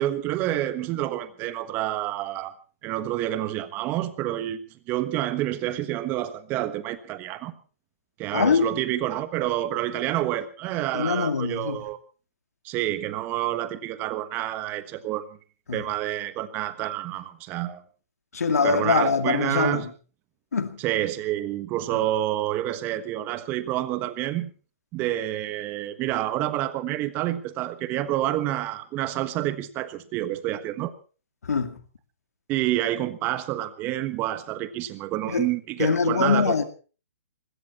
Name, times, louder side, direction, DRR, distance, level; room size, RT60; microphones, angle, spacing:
voice 1, 0.0-2.5 2.8-4.6 4.9-7.5 8.2-12.0 12.6-15.3 15.7-17.8 18.5-19.9 20.8-24.5 24.9-30.9 32.5-36.6, right 14 dB, 25° right, 1.3 m, -28 dB
voice 2, 8.3-8.7 10.9-11.8 15.7-15.8 18.3-19.9 20.5-20.8 31.4-31.8 35.3-35.5 35.8-36.6, left 5 dB, 90° left, 2.2 m, -23 dB
20.0 x 16.5 x 4.2 m
hypercardioid pair, 155°, 8 cm